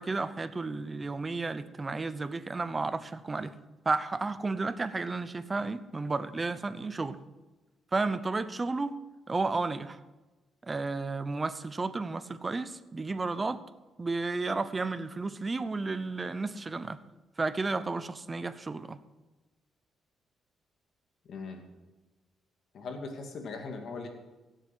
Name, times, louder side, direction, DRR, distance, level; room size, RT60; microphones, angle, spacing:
voice 1, 0.0-3.6 3.9-7.2 7.9-9.0 9.3-10.0 10.6-13.6 14.0-17.0 17.4-19.0, right 3 dB, 25° right, 0.8 m, -32 dB
voice 2, 21.3-21.7 22.7-24.1, left 4 dB, 60° left, 2.4 m, -39 dB
16.5 x 7.6 x 6.3 m
cardioid pair, 90°, 0 cm